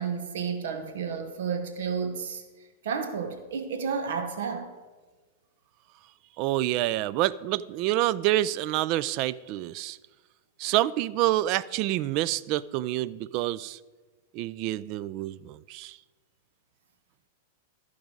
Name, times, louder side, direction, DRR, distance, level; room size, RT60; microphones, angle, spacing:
voice 1, 0.0-2.4 2.8-4.7, right 6 dB, 70° right, 1.0 m, -31 dB
voice 2, 6.4-10.0 10.6-13.8 14.3-16.0, right 15 dB, 50° right, 0.3 m, -27 dB
13.5 x 4.9 x 5.2 m
hypercardioid pair, 110°, 0 cm